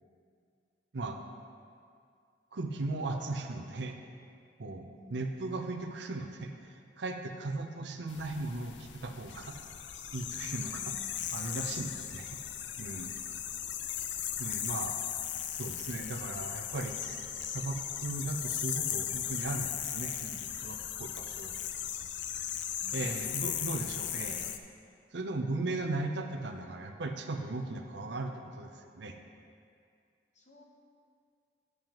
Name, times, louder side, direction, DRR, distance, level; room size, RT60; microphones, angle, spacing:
voice 1, 2.5-4.0 4.6-9.6 10.1-10.9 11.3-12.4 12.8-13.1 14.4-15.0 15.5-21.5 22.9-24.5 25.1-28.7 29.0-29.2, right 2 dB, 70° right, 4 dB, 0.6 m, -37 dB
voice 2, 4.8-5.2 10.5-11.4 22.8-23.1 30.3-30.6, left 1 dB, 40° left, -1 dB, 1.2 m, -54 dB
sound 1, 8.1-24.6, left 10 dB, 70° left, 0.4 m, -37 dB
9.3 x 8.9 x 3.0 m, 2.3 s
head